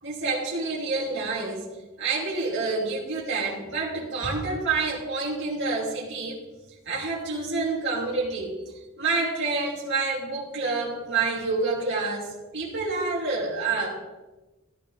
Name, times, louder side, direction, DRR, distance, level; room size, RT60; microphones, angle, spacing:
voice 1, 0.0-1.6 2.0-6.4 6.8-8.6 9.0-14.0, right 3 dB, 60° right, -6 dB, 2.9 m, -28 dB
15.0 x 11.5 x 3.5 m, 1.1 s
head